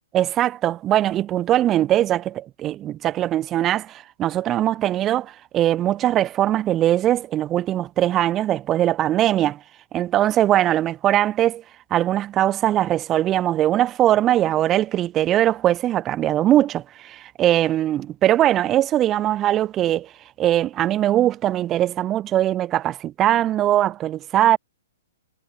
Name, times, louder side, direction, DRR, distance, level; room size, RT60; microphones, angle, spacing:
voice 1, 0.1-9.6 9.9-11.6 11.9-20.1 20.4-24.6, right 12 dB, 25° right, 0.4 m, -21 dB
hypercardioid pair, 140°, 0 cm